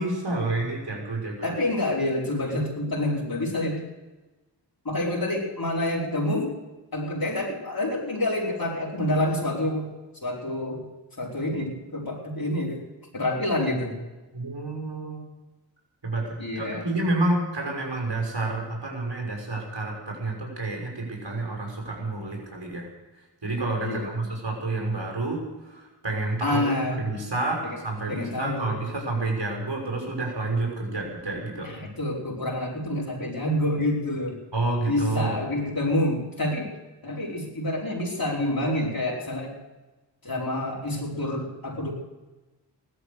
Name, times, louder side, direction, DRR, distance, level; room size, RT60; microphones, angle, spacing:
voice 1, 0.0-1.6 14.3-15.2 16.0-16.3 16.5-22.9 23.4-26.6 27.0-31.7 34.5-35.4, right 2 dB, 70° right, 0 dB, 6.0 m, -29 dB
voice 2, 1.4-3.8 4.8-6.6 6.9-9.9 10.2-10.8 11.2-12.8 13.1-14.0 16.4-16.9 23.8-24.3 26.4-27.0 27.6-27.8 28.1-28.8 31.6-34.4 34.9-36.7 37.0-39.5 40.2-41.9, left 1 dB, 50° left, -3 dB, 4.6 m, -27 dB
16.5 x 13.0 x 6.6 m, 1.1 s
cardioid pair, 45°, 44 cm